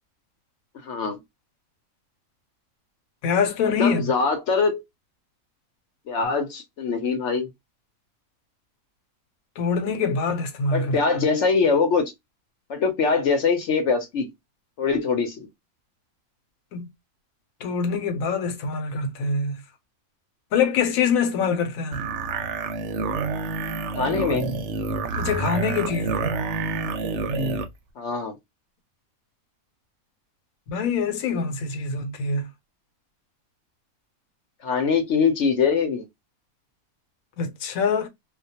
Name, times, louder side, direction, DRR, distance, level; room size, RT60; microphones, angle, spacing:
voice 1, 0.8-1.2 3.8-4.8 6.1-7.5 10.7-12.1 12.7-14.3 14.8-15.5 23.9-24.5 28.0-28.3 34.6-36.1, left 5 dB, 65° left, 0.9 m, -23 dB
voice 2, 3.2-4.0 9.6-10.9 16.7-16.9 17.6-19.6 20.5-22.0 25.2-26.4 30.7-32.5 37.4-38.1, left 5 dB, 80° left, 1.1 m, -24 dB
sound 1, 21.9-27.7, right 4 dB, 65° right, 0.8 m, -28 dB
2.4 x 2.2 x 2.6 m
omnidirectional pair, 1.5 m